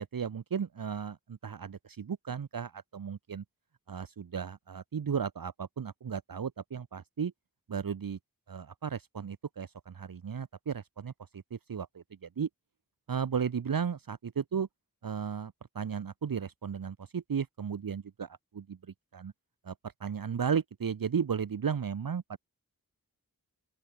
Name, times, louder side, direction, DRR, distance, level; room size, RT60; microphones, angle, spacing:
voice 1, 0.0-3.4 3.9-7.3 7.7-8.2 8.5-12.5 13.1-14.7 15.0-18.8 19.1-19.3 19.6-19.7 20.0-22.4, right 7 dB, 70° right, 0.6 m, -35 dB
open air
wide cardioid pair, 40°, 36 cm